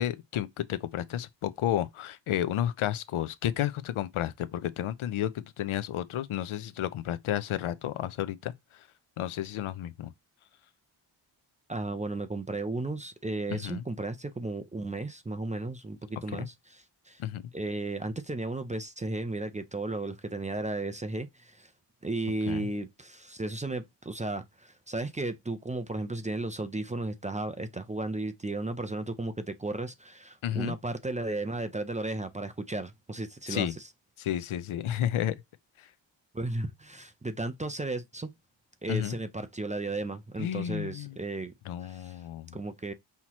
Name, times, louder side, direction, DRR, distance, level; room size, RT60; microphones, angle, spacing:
voice 1, 0.0-8.9 9.2-10.1 13.5-13.8 16.3-16.5 17.2-17.5 22.5-22.7 30.4-30.7 33.5-33.7 34.2-35.4 35.8-35.9 38.9-39.2 40.4-41.2 41.6-42.6, left 11 dB, 90° left, 0.6 m, -32 dB
voice 2, 11.7-16.5 17.1-17.2 17.5-21.7 22.0-33.7 36.3-38.3 38.8-41.5 41.8-42.2 42.5-42.9, right 2 dB, 15° right, 0.4 m, -34 dB
5.7 x 2.9 x 2.9 m
wide cardioid pair, 130°, 48 cm